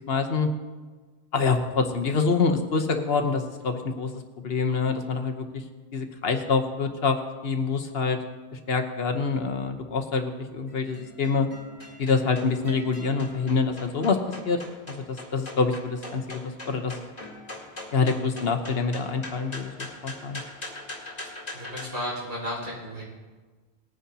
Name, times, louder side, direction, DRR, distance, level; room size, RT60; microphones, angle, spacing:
voice 1, 0.1-0.5 1.3-4.1 4.4-5.6 5.9-7.2 7.4-8.2 8.7-11.5 12.0-14.2 14.4-14.6 14.9-16.9 17.9-20.4, left 4 dB, 65° left, 5 dB, 1.1 m, -26 dB
sound 1, 10.2-21.9, left 2 dB, 35° left, 2.1 m, -42 dB
voice 2, 21.1-23.0, equal, 70° right, -5 dB, 5.1 m, -34 dB
20.0 x 9.8 x 2.8 m, 1.4 s
omnidirectional pair, 1.1 m